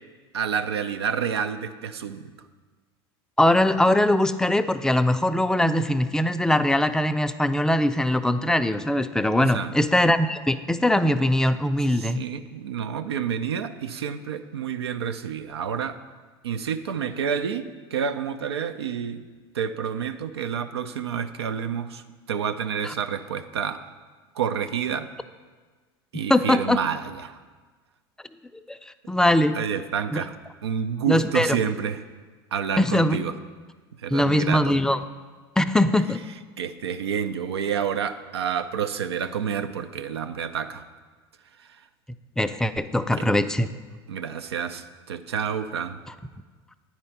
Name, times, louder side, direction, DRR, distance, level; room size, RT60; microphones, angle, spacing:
voice 1, 0.3-2.2 9.4-9.7 11.9-16.0 16.4-17.7 17.9-19.3 19.5-22.0 22.3-23.8 24.4-25.1 26.1-27.4 29.5-30.3 30.6-32.0 32.5-33.3 34.0-34.7 36.6-40.8 43.1-43.3 44.1-46.0, right 7 dB, 90° right, 10 dB, 0.5 m, -29 dB
voice 2, 3.4-12.2 22.8-22.9 26.3-26.8 28.7-28.8 29.1-29.6 30.1-30.2 31.1-31.6 32.8-33.2 34.1-35.0 35.6-36.2 42.4-43.7, left 1 dB, 5° left, 10 dB, 0.3 m, -21 dB
9.2 x 4.3 x 5.8 m, 1.4 s
hypercardioid pair, 85°, 13 cm